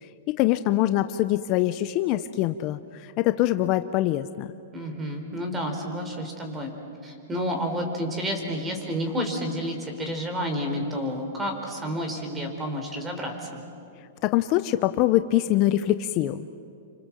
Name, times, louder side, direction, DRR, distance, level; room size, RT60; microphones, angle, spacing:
voice 1, 0.0-4.5 14.2-16.6, left 14 dB, 40° left, 11 dB, 0.7 m, -24 dB
voice 2, 4.7-6.7 7.0-13.5, equal, 15° right, 4 dB, 4.2 m, -30 dB
28.5 x 25.5 x 7.6 m, 2.5 s
hypercardioid pair, 145°, 0 cm